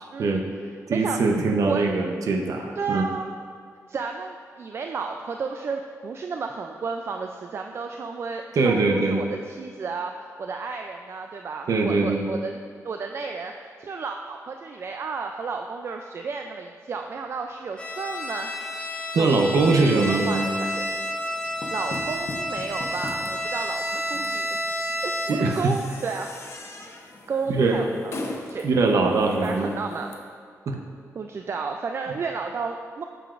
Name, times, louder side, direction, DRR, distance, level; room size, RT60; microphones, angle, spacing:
voice 1, 0.1-0.4 0.9-1.2 1.7-1.8 2.8-3.3 3.9-10.1 10.4-18.5 19.1-19.4 19.7-20.9 21.2-21.3 21.7-26.4 27.3-28.1 28.5-28.7 29.0-30.1 31.2-33.0, right 5 dB, 45° right, 4 dB, 0.3 m, -32 dB
voice 2, 0.9-3.0 8.5-9.2 11.7-12.2 19.1-20.4 25.3-25.8 27.5-27.8 28.6-29.7 30.7-30.8, right 3 dB, 75° right, 3 dB, 0.7 m, -22 dB
Bowed string instrument, 17.8-25.6, left 1 dB, 15° left, 0.8 m, -30 dB
sound 1, 20.3-30.1, left 2 dB, 50° left, 0.7 m, -41 dB
8.9 x 7.0 x 2.5 m, 2.2 s
wide cardioid pair, 120°, 6 cm